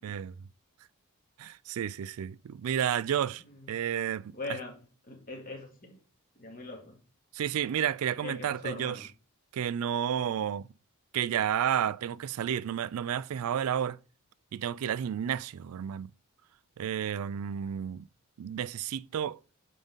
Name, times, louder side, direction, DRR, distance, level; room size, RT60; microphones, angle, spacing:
voice 1, 0.0-0.3 1.4-3.4 3.7-4.3 7.3-9.0 9.5-10.7 11.1-14.0 14.5-16.1 16.8-18.1 18.4-19.4, right 9 dB, 75° right, 0.3 m, -31 dB
voice 2, 4.3-4.8 5.1-6.0 6.4-6.9 8.2-9.1, left 3 dB, 40° left, 2.3 m, -41 dB
8.8 x 3.8 x 3.9 m
head